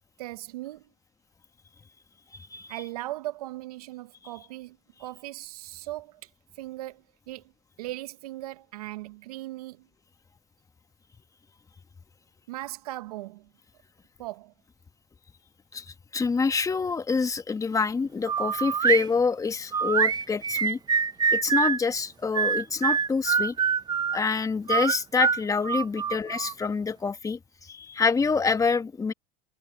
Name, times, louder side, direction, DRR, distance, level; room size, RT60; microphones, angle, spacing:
voice 1, 0.2-0.9 2.7-6.3 6.5-7.5 7.8-9.9 12.5-13.5 14.2-14.5, right 16 dB, 80° right, 1.1 m, -38 dB
voice 2, 2.3-2.7 15.7-15.8 16.1-20.8 21.3-23.6 24.1-29.1, left 5 dB, 15° left, 1.5 m, -26 dB
sound 1, 18.3-19.1 19.7-21.8 22.3-24.2 24.7-26.5, right 6 dB, 20° right, 0.7 m, -25 dB
supercardioid pair, 110°, 19 cm